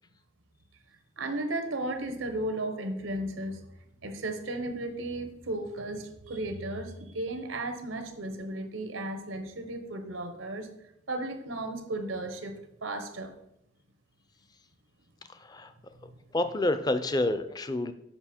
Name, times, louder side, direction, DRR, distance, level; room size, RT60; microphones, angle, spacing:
voice 1, 1.2-3.6 4.0-10.7 11.1-12.5 12.8-13.4, right 1 dB, 90° right, 8 dB, 1.0 m, -34 dB
voice 2, 15.3-15.7 16.3-17.9, left 2 dB, 20° left, 10 dB, 0.4 m, -28 dB
6.9 x 5.5 x 4.3 m, 0.81 s
head